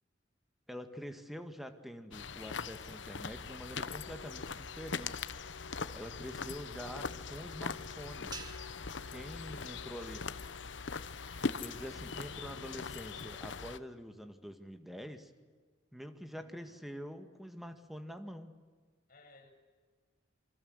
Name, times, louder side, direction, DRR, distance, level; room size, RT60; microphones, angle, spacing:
voice 1, 0.7-5.2 5.9-8.3 9.1-10.2 11.6-15.3 15.9-18.5, equal, ahead, 7 dB, 1.9 m, -46 dB
sound 1, 2.1-13.8, left 5 dB, 75° left, 1.0 m, -41 dB
sound 2, 3.2-12.8, right 1 dB, 45° right, 7.9 m, -60 dB
sound 3, 8.3-10.8, right 4 dB, 20° right, 2.1 m, -52 dB
voice 2, 9.6-10.2 16.3-16.8 19.1-19.5, left 2 dB, 45° left, 5 dB, 7.6 m, -61 dB
27.5 x 25.0 x 8.0 m, 1.5 s
head